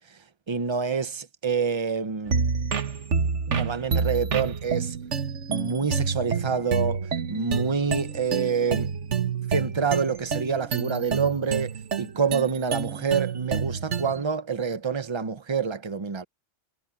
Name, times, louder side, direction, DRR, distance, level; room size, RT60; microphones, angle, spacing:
voice 1, 0.5-2.4 3.5-5.0 5.5-8.9 9.5-16.2, right 5 dB, 25° right, 0.9 m, -27 dB
sound 1, 2.3-14.2, right 6 dB, 75° right, 1.5 m, -28 dB
omnidirectional pair, 1.2 m